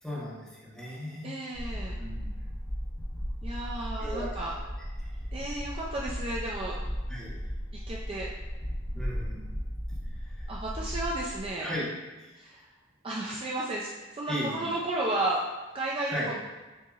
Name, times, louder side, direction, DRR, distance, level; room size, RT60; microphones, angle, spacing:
voice 1, 0.0-1.3 2.0-2.3 4.0-4.3 5.0-5.1 7.1-7.4 8.9-9.5 10.4-10.5 11.6-11.9 12.2-12.3 14.3-14.7 16.1-16.3, equal, 5° left, -7 dB, 1.0 m, -36 dB
voice 2, 1.2-2.0 3.4-4.5 5.3-6.8 7.9-8.3 10.5-11.7 12.3-12.7 13.0-15.4 15.7-16.2, right 2 dB, 25° right, -4 dB, 0.3 m, -33 dB
sound 1, 1.5-11.5, equal, 20° left, 1.2 m, -36 dB
6.8 x 2.8 x 2.4 m, 1.2 s
head